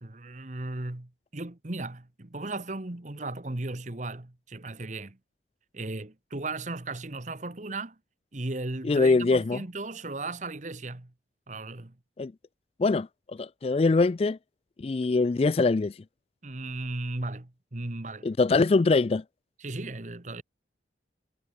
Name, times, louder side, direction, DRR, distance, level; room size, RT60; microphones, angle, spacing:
voice 1, 0.0-5.2 5.7-8.0 8.3-11.1 11.5-12.0 16.4-18.3 19.6-20.4, right 2 dB, 40° right, 1.3 m, -36 dB
voice 2, 8.8-9.6 12.2-12.3 12.8-14.4 14.8-15.9 18.2-19.2, left 3 dB, 35° left, 0.3 m, -23 dB
head